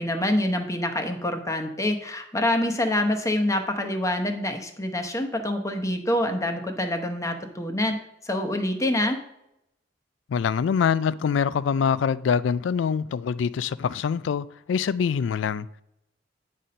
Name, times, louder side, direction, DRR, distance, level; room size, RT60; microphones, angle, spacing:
voice 1, 0.0-8.0 8.2-9.2, left 1 dB, 15° left, 0.8 m, -26 dB
voice 2, 10.3-15.7, left 6 dB, 75° left, 0.3 m, -24 dB
8.9 x 4.2 x 5.1 m
head